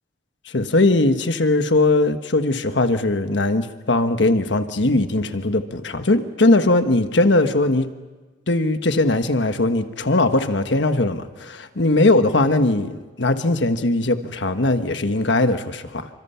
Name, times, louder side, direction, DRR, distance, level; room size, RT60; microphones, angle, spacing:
voice 1, 0.5-7.9 8.5-16.1, left 2 dB, 70° left, 1.3 m, -19 dB
28.5 x 25.0 x 5.7 m
head